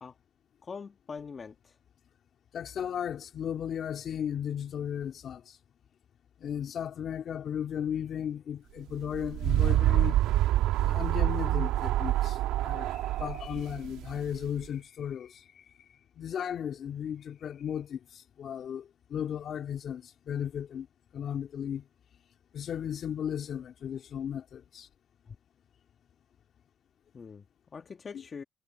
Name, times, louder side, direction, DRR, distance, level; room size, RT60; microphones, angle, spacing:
voice 1, 0.6-1.8 25.3-25.4 27.1-28.4, left 5 dB, 25° left, 1.7 m, -43 dB
voice 2, 2.5-5.6 6.4-10.2 10.8-15.6 16.1-20.9 21.1-21.9 22.5-24.9, left 9 dB, 45° left, 3.2 m, -35 dB
sound 1, 8.9-14.5, right 14 dB, 70° right, 1.8 m, -27 dB
cardioid pair, 130°, 0 cm